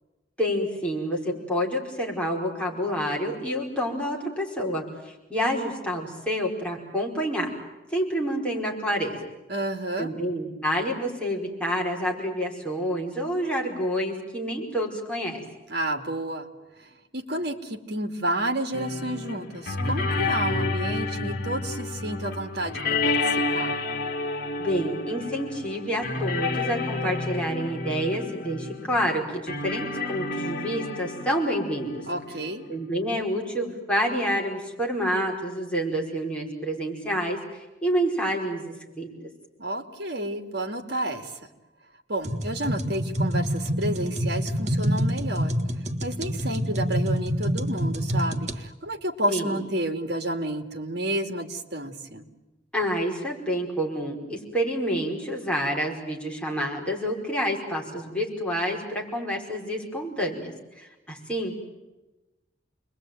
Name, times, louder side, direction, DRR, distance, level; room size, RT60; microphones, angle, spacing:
voice 1, 0.4-7.5 7.9-9.2 10.0-15.4 24.6-32.0 32.7-39.1 49.3-49.6 52.7-61.6, equal, 5° left, -2 dB, 5.1 m, -28 dB
voice 2, 9.5-10.1 15.7-16.5 16.8-23.8 32.1-32.7 39.6-41.4 42.1-45.5 46.0-52.3, right 1 dB, 60° right, 6 dB, 2.6 m, -30 dB
sound 1, 18.7-32.9, left 3 dB, 50° left, 2.4 m, -30 dB
sound 2, 42.2-48.6, equal, 40° right, 1.7 m, -27 dB
29.0 x 21.5 x 9.3 m, 1.1 s
head